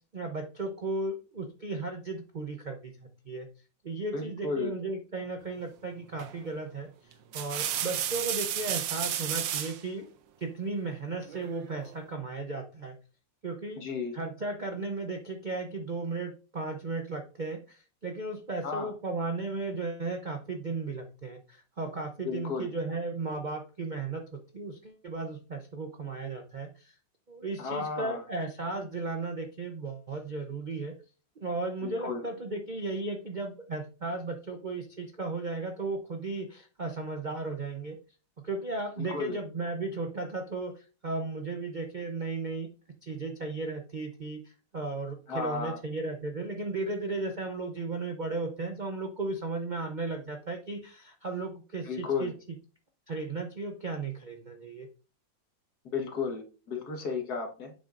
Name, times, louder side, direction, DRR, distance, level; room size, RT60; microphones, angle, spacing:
voice 1, 0.1-3.5 3.8-10.1 10.4-12.9 13.4-13.8 14.1-24.2 24.5-27.0 27.3-30.9 31.4-38.0 38.4-42.7 43.0-52.3 53.1-54.9, right 3 dB, 45° right, 4 dB, 0.6 m, -35 dB
voice 2, 4.1-4.7 13.8-14.2 18.6-18.9 22.2-22.7 27.6-28.2 31.8-32.3 39.0-39.4 45.3-45.8 51.8-52.3 55.9-57.7, left 5 dB, 60° left, 4 dB, 1.9 m, -33 dB
sound 1, 6.2-6.5 7.1-9.8 11.3-11.9, right 10 dB, 85° right, 1.5 m, -33 dB
8.9 x 7.4 x 2.5 m, 0.36 s
omnidirectional pair, 2.0 m